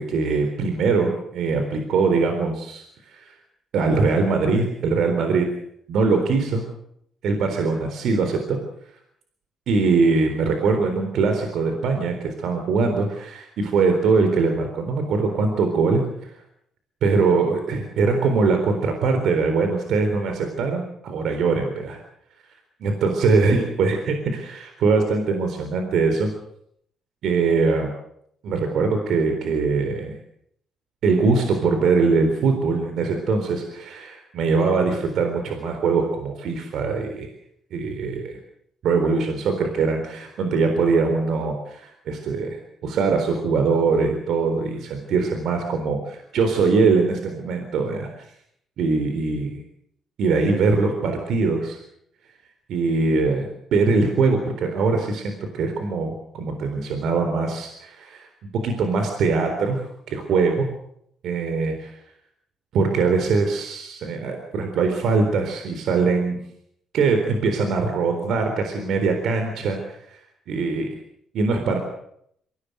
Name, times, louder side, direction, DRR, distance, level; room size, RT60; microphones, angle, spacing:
voice 1, 0.0-3.4 3.7-5.5 5.9-6.6 7.2-8.6 9.7-16.3 17.0-22.0 22.8-26.3 27.2-27.9 28.4-30.1 31.0-37.3 37.7-38.4 38.8-42.6 42.8-48.3 48.8-49.6 50.2-51.8 52.7-58.3 58.6-60.7 61.2-62.0 62.7-66.4 66.9-70.2 70.5-70.9 71.3-71.8, right 4 dB, 75° right, 5 dB, 3.9 m, -22 dB
25.0 x 17.0 x 8.0 m, 0.71 s
cardioid pair, 90°, 0 cm